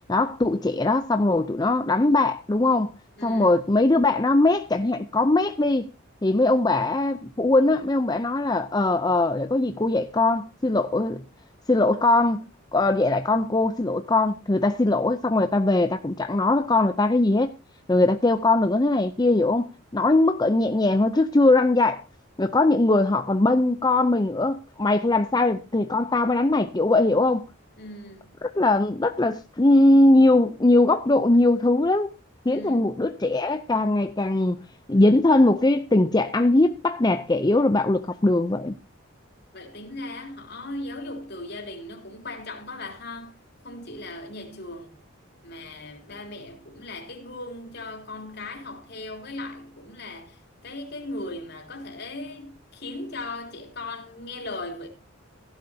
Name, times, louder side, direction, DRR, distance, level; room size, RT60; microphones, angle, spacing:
voice 1, 0.1-2.9 3.2-5.9 6.2-11.2 11.7-17.5 17.9-22.0 22.4-27.4 28.4-32.1 32.5-38.8, left 2 dB, 20° left, 0.5 m, -21 dB
voice 2, 3.2-3.5 27.8-28.3 32.5-32.9 39.5-43.4 43.6-45.0 45.4-54.9, left 2 dB, 50° left, 3.5 m, -38 dB
16.0 x 11.5 x 2.8 m
head